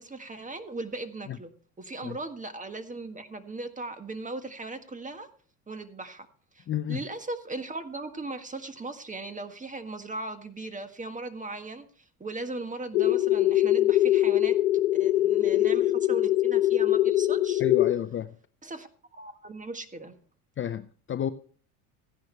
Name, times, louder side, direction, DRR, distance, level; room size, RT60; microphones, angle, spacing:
voice 1, 0.0-1.5 1.8-5.3 5.7-6.3 6.5-14.6 15.0-17.6 18.6-20.1, right 2 dB, 15° right, 1.6 m, -38 dB
voice 2, 6.7-7.0 17.6-18.3 20.6-21.3, left 10 dB, 30° left, 0.6 m, -30 dB
sound 1, 12.9-17.9, left 14 dB, 85° left, 0.7 m, -23 dB
14.5 x 10.5 x 3.3 m
hypercardioid pair, 75°, 44 cm